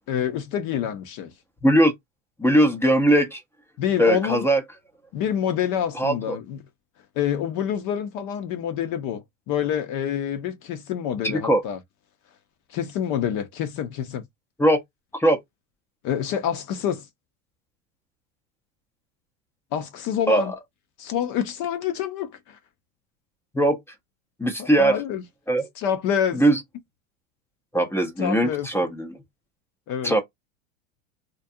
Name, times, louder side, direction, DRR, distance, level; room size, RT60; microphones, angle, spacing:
voice 1, 0.1-1.3 3.8-4.4 5.1-6.6 7.2-11.8 12.7-14.2 16.0-17.1 19.7-20.5 21.0-22.6 24.6-25.2 25.8-26.4 28.2-28.7 29.9-30.1, left 9 dB, 50° left, 0.6 m, -27 dB
voice 2, 1.6-1.9 2.4-3.4 4.0-4.6 5.9-6.4 11.2-11.6 14.6-14.8 15.2-15.4 20.3-20.5 23.5-23.8 24.4-25.0 25.5-25.7 26.3-26.6 27.7-29.1 30.0-30.2, right 1 dB, 5° left, 0.5 m, -20 dB
2.5 x 2.2 x 2.6 m
supercardioid pair, 105°, 39 cm